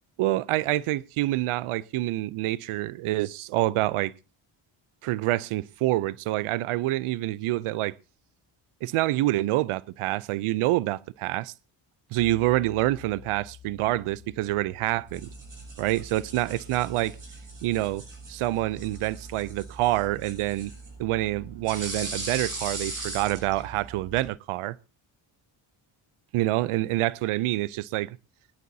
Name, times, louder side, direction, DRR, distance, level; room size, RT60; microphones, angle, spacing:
voice 1, 0.2-4.1 5.0-7.9 8.8-11.5 12.1-15.3 15.8-17.2 17.6-18.0 18.3-20.7 21.0-24.8 26.3-28.2, right 16 dB, 85° right, 0.6 m, -27 dB
sound 1, 12.2-20.3, left 9 dB, 20° left, 5.3 m, -52 dB
sound 2, 15.1-24.3, right 2 dB, 40° right, 7.5 m, -39 dB
20.5 x 11.0 x 2.7 m
supercardioid pair, 60°, 50 cm